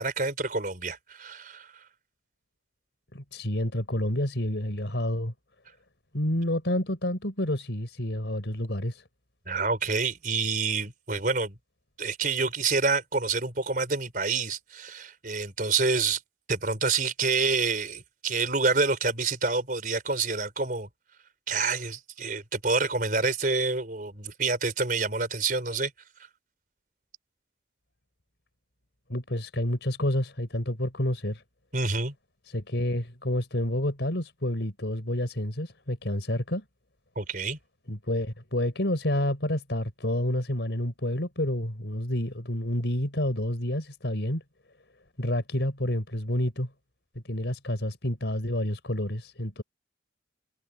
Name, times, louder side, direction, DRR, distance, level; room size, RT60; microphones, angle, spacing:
voice 1, 0.0-1.7 9.5-11.5 12.0-16.2 16.5-20.9 21.5-25.9 31.7-32.1 37.2-37.6, right 4 dB, 50° right, 4.7 m, -27 dB
voice 2, 3.1-5.3 6.1-9.0 29.1-31.4 32.5-36.6 37.9-44.4 45.2-46.7 47.3-49.6, left 1 dB, 75° left, 3.9 m, -29 dB
head